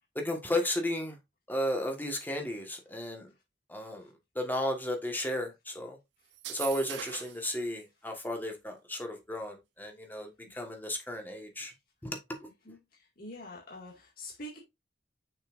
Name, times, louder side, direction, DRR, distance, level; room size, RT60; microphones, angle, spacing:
voice 1, 0.1-1.2 1.5-3.3 3.7-4.1 4.3-6.0 6.5-11.7 12.0-12.5, left 1 dB, 10° left, 1.5 m, -34 dB
sound 1, 6.3-7.5, right 11 dB, 85° right, 0.6 m, -40 dB
voice 2, 12.7-14.6, left 1 dB, 55° left, 2.1 m, -45 dB
6.7 x 5.5 x 2.6 m
head